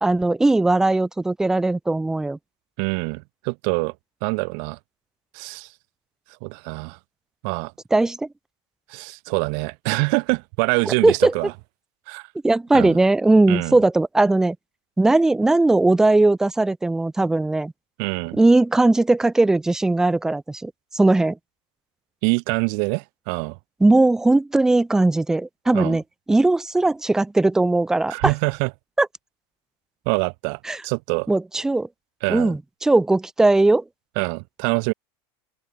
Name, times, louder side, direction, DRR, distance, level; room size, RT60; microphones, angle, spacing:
voice 1, 0.0-2.4 7.9-8.3 11.0-11.3 12.4-14.6 15.0-17.7 18.3-21.4 23.8-26.0 26.3-28.3 29.0-29.1 30.7-30.8 31.3-31.9 32.3-33.8, right 2 dB, 5° right, 0.5 m, -19 dB
voice 2, 2.8-3.9 4.2-4.8 5.3-5.7 6.4-7.0 7.4-7.7 8.9-11.5 12.1-12.3 12.7-13.0 13.5-13.8 18.0-18.4 22.2-23.6 25.7-26.0 28.1-28.7 30.1-31.3 32.2-32.5 34.2-34.9, right 40 dB or more, 45° right, 1.0 m, -25 dB
open air
supercardioid pair, 170°, 14 cm